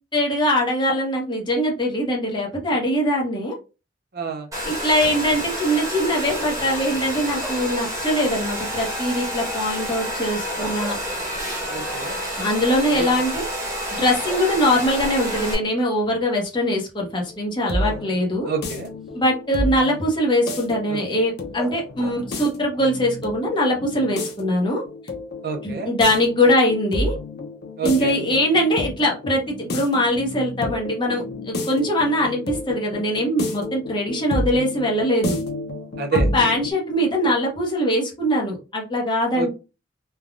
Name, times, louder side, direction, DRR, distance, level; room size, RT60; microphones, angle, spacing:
voice 1, 0.1-3.6 4.6-11.0 12.4-13.5 14.0-18.5 19.1-24.8 25.6-27.1 27.8-35.4 36.3-39.5, equal, 25° left, -1 dB, 0.9 m, -22 dB
voice 2, 4.1-4.5 11.7-12.2 13.0-13.1 18.4-18.9 20.9-21.0 25.4-25.9 27.8-28.2 36.0-36.3 39.3-39.5, right 5 dB, 55° right, 4 dB, 0.6 m, -27 dB
Domestic sounds home sounds, 4.5-15.5, equal, 20° right, 1.1 m, -29 dB
sound 1, 7.4-7.9 10.4-11.8 12.2-12.3 13.8-13.9 14.3-15.4 16.4-16.5 17.8-18.5 21.6-22.4, left 1 dB, ahead, 0.3 m, -37 dB
sound 2, 17.3-36.7, left 1 dB, 60° left, 0.6 m, -30 dB
3.3 x 2.3 x 2.4 m, 0.31 s
head